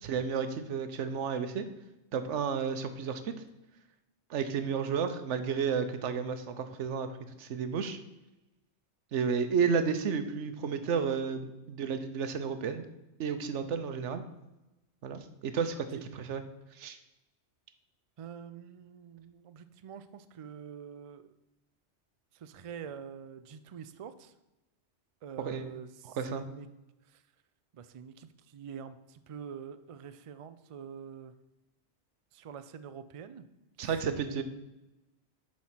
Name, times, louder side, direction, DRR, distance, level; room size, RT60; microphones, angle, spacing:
voice 1, 0.0-1.7 2.1-3.3 4.3-7.1 7.4-8.0 9.1-12.9 13.2-14.2 15.0-16.4 16.7-17.0 25.4-25.6 26.0-26.4 33.8-34.4, right 6 dB, 90° right, 9 dB, 1.1 m, -32 dB
voice 2, 18.2-21.3 22.3-24.3 25.2-26.7 27.1-27.2 27.7-31.3 32.3-33.5 33.8-34.4, right 7 dB, 65° right, 11 dB, 0.3 m, -46 dB
7.5 x 4.3 x 5.7 m, 0.98 s
omnidirectional pair, 1.2 m